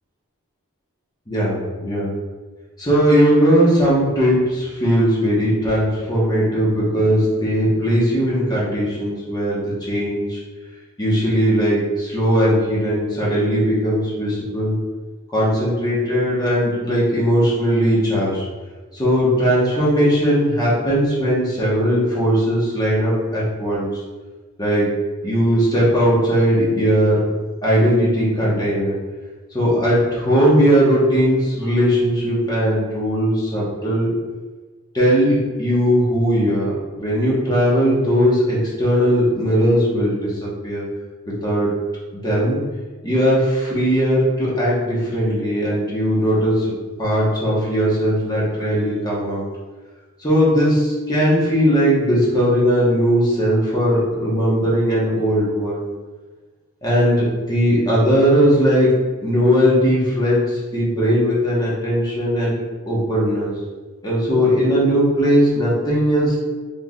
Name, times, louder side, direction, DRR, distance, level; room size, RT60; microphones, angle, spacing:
voice 1, 1.3-2.1 2.8-10.4 11.0-14.7 15.3-18.4 18.9-23.9 24.6-24.9 25.2-27.2 27.6-28.9 29.5-34.1 34.9-40.9 41.3-41.7 42.1-42.6 43.0-46.7 47.0-49.4 50.2-55.8 56.8-62.5 62.9-63.5 64.0-66.4, equal, 20° left, -6 dB, 1.1 m, -18 dB
4.6 x 3.7 x 2.4 m, 1.3 s
head